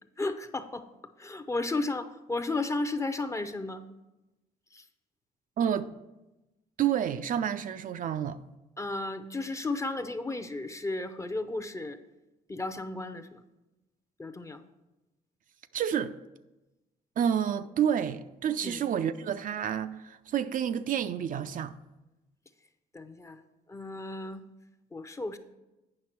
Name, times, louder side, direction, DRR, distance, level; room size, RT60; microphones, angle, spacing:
voice 1, 0.2-0.9 1.2-3.9 4.7-4.8 8.8-12.0 12.5-13.4 14.2-14.6 18.6-18.8 22.9-23.4 23.7-24.4 24.9-25.4, left 2 dB, 20° left, 0.6 m, -34 dB
voice 2, 5.6-5.9 6.8-8.4 15.7-16.1 17.2-21.7, right 9 dB, 60° right, 0.4 m, -29 dB
8.7 x 5.8 x 4.5 m
cardioid pair, 90°, 16 cm